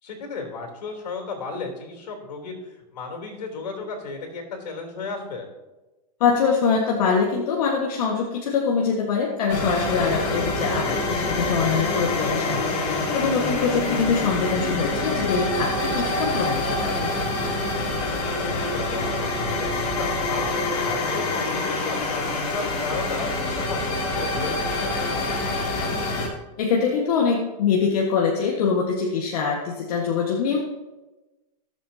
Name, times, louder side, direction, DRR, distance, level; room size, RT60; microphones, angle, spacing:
voice 1, 0.0-5.5 10.8-11.0 18.4-20.5 20.8-24.9, left 4 dB, 90° left, 2 dB, 3.6 m, -34 dB
voice 2, 6.2-17.1 26.6-30.7, left 5 dB, 70° left, -1 dB, 1.7 m, -24 dB
sound 1, 9.5-26.3, left 2 dB, 50° left, 3.2 m, -26 dB
18.0 x 7.6 x 2.9 m, 1.1 s
hypercardioid pair, 135°, 20 cm